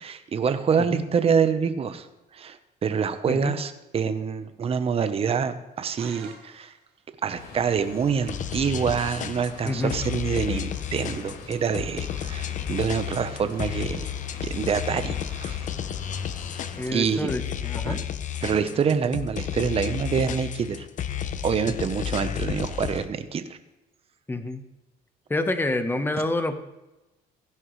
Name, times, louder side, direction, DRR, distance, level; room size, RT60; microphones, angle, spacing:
voice 1, 0.0-2.1 2.3-6.7 7.2-14.1 14.4-15.6 16.9-17.3 17.9-18.0 18.4-20.8 21.4-23.6, right 6 dB, 35° right, 10 dB, 0.9 m, -26 dB
sound 1, 6.0-7.1, right 6 dB, 80° right, 1.6 m, -46 dB
sound 2, 7.3-17.2, left 4 dB, 75° left, 4.6 m, -43 dB
sound 3, 8.3-23.1, left 9 dB, 50° left, 0.7 m, -32 dB
voice 2, 16.8-18.0 24.3-24.6 25.3-26.6, left 2 dB, 10° left, 8 dB, 1.0 m, -27 dB
15.0 x 10.5 x 3.2 m, 1.0 s
cardioid pair, 110°, 17 cm